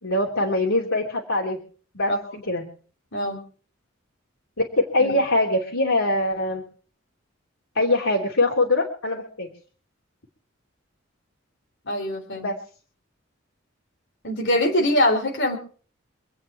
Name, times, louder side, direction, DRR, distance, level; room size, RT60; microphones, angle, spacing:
voice 1, 0.0-1.6 1.9-2.1 2.5-2.7 4.8-6.6 7.7-9.5 12.4-12.5, left 2 dB, 90° left, -1 dB, 3.2 m, -23 dB
voice 2, 11.9-12.5 14.2-15.6, left 1 dB, 60° left, 3 dB, 3.8 m, -23 dB
26.5 x 9.0 x 4.6 m, 0.42 s
head